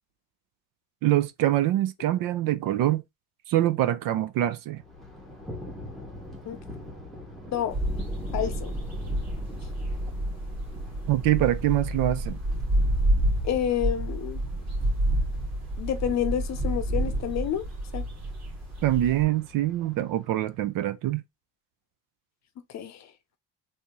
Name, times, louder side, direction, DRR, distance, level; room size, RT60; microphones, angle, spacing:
voice 1, 1.0-3.0 3.5-4.8 11.1-12.4 18.8-21.2, right 14 dB, 55° right, 0.4 m, -24 dB
Thunder, 4.7-20.7, left 2 dB, ahead, 0.9 m, -44 dB
sound 1, 7.7-19.2, right 1 dB, 40° right, 1.8 m, -29 dB
voice 2, 8.3-8.7 13.4-14.4 15.8-17.6 17.9-18.0 22.7-23.1, left 9 dB, 40° left, 0.6 m, -28 dB
3.4 x 2.7 x 2.9 m
cardioid pair, 135°, 41 cm